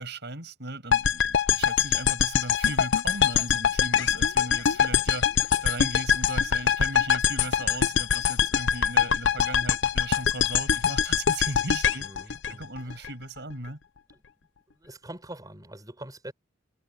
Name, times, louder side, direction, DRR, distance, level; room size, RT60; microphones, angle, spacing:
voice 1, 0.0-5.3 5.6-12.1 12.5-13.8, right 2 dB, 60° right, 6.9 m, -37 dB
sound 1, 0.9-13.1, left 7 dB, 65° left, 0.7 m, -24 dB
voice 2, 12.0-13.1 14.1-14.2 14.7-16.3, right 1 dB, 20° right, 7.3 m, -44 dB
head